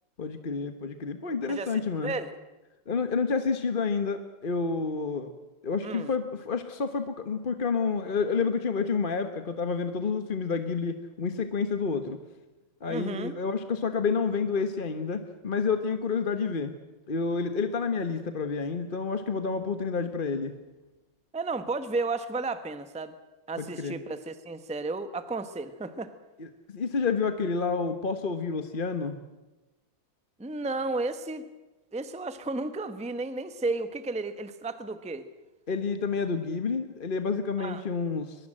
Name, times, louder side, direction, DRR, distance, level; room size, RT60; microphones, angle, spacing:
voice 1, 0.2-2.1 2.9-5.3 5.6-12.2 12.8-16.7 17.1-20.5 23.6-24.0 26.4-29.2 35.7-38.4, left 5 dB, 35° left, 9 dB, 1.1 m, -29 dB
voice 2, 1.5-2.3 5.8-6.1 12.9-13.3 21.3-23.1 23.5-26.1 30.4-31.5 31.9-35.2 37.6-37.8, right 3 dB, 5° right, 11 dB, 0.9 m, -33 dB
23.0 x 21.5 x 7.7 m, 1.1 s
omnidirectional pair, 2.1 m